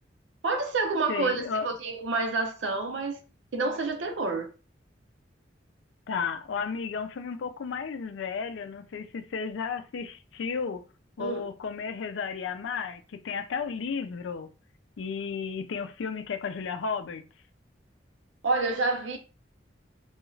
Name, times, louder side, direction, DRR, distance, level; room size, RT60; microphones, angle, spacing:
voice 1, 0.4-3.2 3.5-4.5 11.2-11.4 18.4-19.2, right 3 dB, 85° right, 0.6 m, -28 dB
voice 2, 1.1-1.7 6.1-10.8 11.2-14.5 15.0-17.2, left 5 dB, 85° left, 0.4 m, -33 dB
2.4 x 2.3 x 3.1 m
head